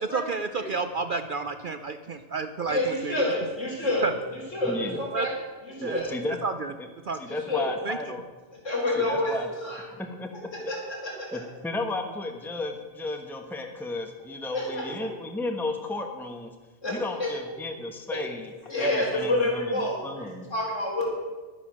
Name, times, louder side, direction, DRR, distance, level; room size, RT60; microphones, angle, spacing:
voice 1, 0.0-3.2 4.0-4.1 5.1-5.3 5.8-6.0 6.4-6.7 7.1-7.2 7.8-8.1, right 4 dB, 55° right, 9 dB, 0.6 m, -30 dB
voice 2, 2.7-5.3 5.6-6.1 7.2-7.7 8.6-9.8 10.5-11.4 14.5-15.1 16.8-17.3 18.1-18.2 18.7-21.1, left 1 dB, 75° left, -3 dB, 4.4 m, -29 dB
voice 3, 4.7-5.0 5.8-6.4 7.2-8.2 9.0-9.5 9.9-10.3 10.6-10.7 11.3-16.5 16.9-20.5, left 2 dB, ahead, 4 dB, 1.0 m, -34 dB
11.0 x 9.9 x 6.2 m, 1.3 s
omnidirectional pair, 1.3 m